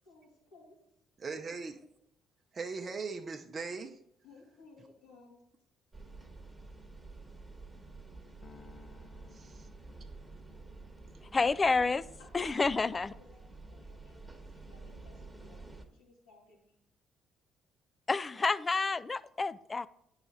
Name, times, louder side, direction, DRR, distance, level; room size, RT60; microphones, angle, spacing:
voice 1, 0.0-0.8 3.6-3.7 4.2-5.4 12.2-12.6 13.3-16.8, left 3 dB, 90° left, -4 dB, 2.4 m, -59 dB
voice 2, 1.2-1.8 2.5-4.0 9.3-9.7, right 4 dB, 40° right, 4 dB, 0.5 m, -39 dB
sound 1, 5.9-15.9, right 3 dB, 15° right, 1.2 m, -50 dB
Piano, 8.4-10.8, left 5 dB, 45° left, 1.0 m, -58 dB
voice 3, 11.3-12.0 12.3-13.1 18.1-19.9, left 4 dB, 30° left, 18 dB, 0.3 m, -29 dB
8.8 x 4.9 x 4.1 m, 0.78 s
supercardioid pair, 60°, 0 cm